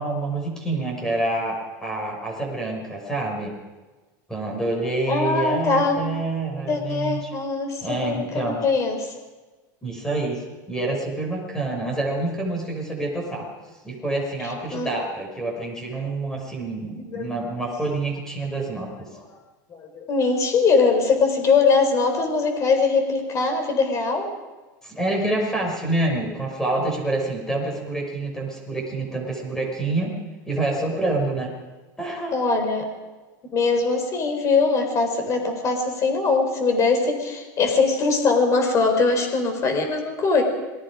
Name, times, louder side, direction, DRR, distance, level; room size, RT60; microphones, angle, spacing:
voice 1, 0.0-3.5 4.3-7.3 7.8-8.6 9.8-13.5 13.8-19.1 24.8-30.2 30.5-31.6 32.0-32.3, right 2 dB, 5° left, 0 dB, 5.9 m, -27 dB
voice 2, 5.1-6.0 6.7-9.1 14.7-14.9 16.9-17.3 19.8-24.3 32.3-32.9 33.5-40.4, left 4 dB, 30° left, 5 dB, 4.5 m, -21 dB
27.5 x 20.0 x 5.1 m, 1.2 s
supercardioid pair, 145°, 10 cm